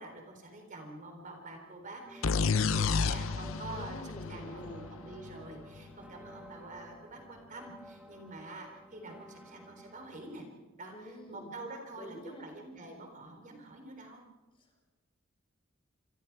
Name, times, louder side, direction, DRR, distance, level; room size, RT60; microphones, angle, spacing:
voice 1, 0.0-10.4 10.8-14.2, right 2 dB, 40° right, 3 dB, 3.7 m, -47 dB
sound 1, 2.0-10.4, equal, 5° right, 1.9 m, -53 dB
sound 2, 2.2-5.9, left 5 dB, 80° left, 0.7 m, -31 dB
voice 2, 3.7-4.8 10.9-11.6 11.9-12.5 14.6-14.8, left 1 dB, 25° left, 2 dB, 5.3 m, -47 dB
26.5 x 26.5 x 4.7 m, 1.1 s
head